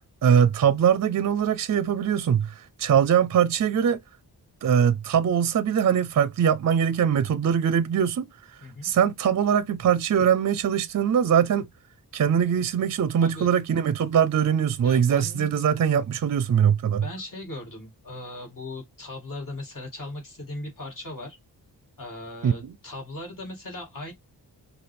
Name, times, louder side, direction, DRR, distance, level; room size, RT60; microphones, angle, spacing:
voice 1, 0.2-4.0 4.6-11.7 12.1-17.0 22.4-22.5, right 8 dB, 45° right, 0.4 m, -22 dB
voice 2, 13.2-13.5 14.8-15.6 17.0-21.4 22.0-24.1, left 2 dB, 55° left, 2.4 m, -38 dB
5.6 x 2.4 x 3.3 m
wide cardioid pair, 135°, 39 cm